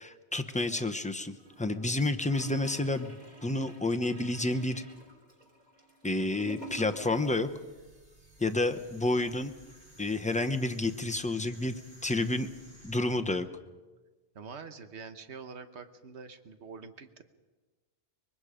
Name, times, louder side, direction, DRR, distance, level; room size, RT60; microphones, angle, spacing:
voice 1, 0.0-4.8 6.0-7.5 8.4-9.5 10.0-12.5 12.8-13.5, left 2 dB, 10° left, 7 dB, 0.7 m, -30 dB
Gurgling / Toilet flush, 1.4-7.5 7.7-7.8, right 2 dB, 40° right, 3.4 m, -49 dB
sound 1, 6.9-13.3, right 1 dB, 65° right, 5.6 m, -56 dB
voice 2, 14.3-17.2, right 5 dB, 85° right, 9 dB, 1.4 m, -45 dB
24.5 x 22.0 x 5.0 m, 1.3 s
omnidirectional pair, 1.1 m